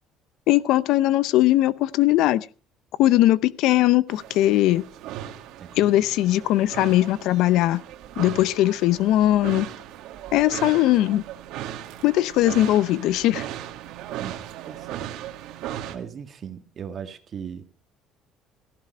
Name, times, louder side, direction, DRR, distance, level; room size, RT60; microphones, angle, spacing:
voice 1, 0.5-2.5 3.0-4.9 5.8-7.8 8.2-9.7 10.3-11.2 12.0-13.5, left 15 dB, 70° left, 0.6 m, -20 dB
sound 1, 4.1-16.0, right 12 dB, 70° right, 2.0 m, -37 dB
voice 2, 5.6-6.1 14.2-15.1 15.4-15.6 15.9-17.6, right 7 dB, 35° right, 1.6 m, -39 dB
17.0 x 15.0 x 4.3 m
cardioid pair, 150°, 0 cm